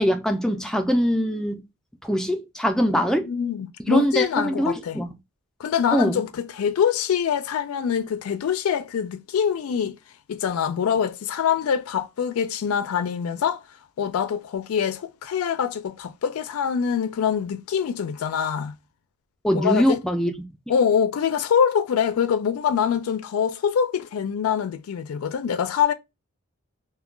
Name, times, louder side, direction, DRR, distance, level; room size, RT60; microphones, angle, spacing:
voice 1, 0.0-1.6 2.0-3.3 3.9-5.1 5.9-6.2 19.4-20.5, equal, ahead, 0.3 m, -22 dB
voice 2, 3.2-5.0 5.6-10.0 10.3-13.6 14.0-18.7 19.5-20.0 20.7-25.9, left 7 dB, 85° left, 0.4 m, -24 dB
2.2 x 2.2 x 3.5 m
head